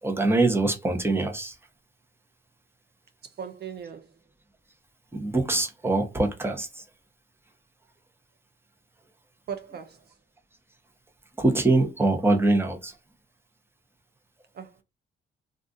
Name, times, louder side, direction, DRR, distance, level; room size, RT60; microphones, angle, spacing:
voice 1, 0.0-1.6 5.1-6.8 11.4-12.9, right 2 dB, 10° right, 0.9 m, -24 dB
voice 2, 3.4-4.1 9.5-10.0 14.5-14.8, right 7 dB, 55° right, 0.5 m, -38 dB
2.4 x 2.4 x 3.9 m
cardioid pair, 90°, 20 cm